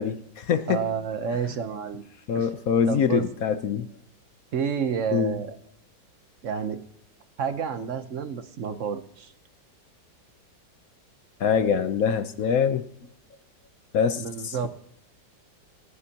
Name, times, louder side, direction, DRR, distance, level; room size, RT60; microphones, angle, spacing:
voice 1, 0.0-0.8 2.3-3.9 5.1-5.4 11.4-12.8 13.9-14.7, left 7 dB, 60° left, 11 dB, 1.0 m, -24 dB
voice 2, 0.7-2.0 2.3-2.5 2.9-3.2 4.5-5.5 6.4-6.8 7.4-9.3 14.2-14.7, right 7 dB, 55° right, 10 dB, 1.0 m, -29 dB
27.0 x 9.8 x 2.8 m, 0.71 s
omnidirectional pair, 2.0 m